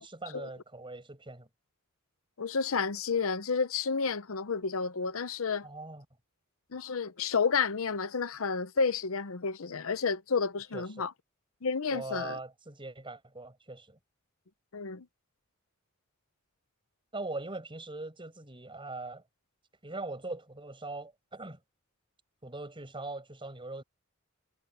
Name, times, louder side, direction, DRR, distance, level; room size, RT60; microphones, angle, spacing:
voice 1, 0.0-1.5 5.6-6.0 10.7-11.1 11.9-14.0 17.1-19.2 19.8-21.6 22.4-23.8, right 2 dB, 25° right, 6.5 m, -41 dB
voice 2, 2.4-5.7 6.7-11.1 11.6-12.4 14.7-15.1, left 5 dB, 70° left, 0.8 m, -31 dB
head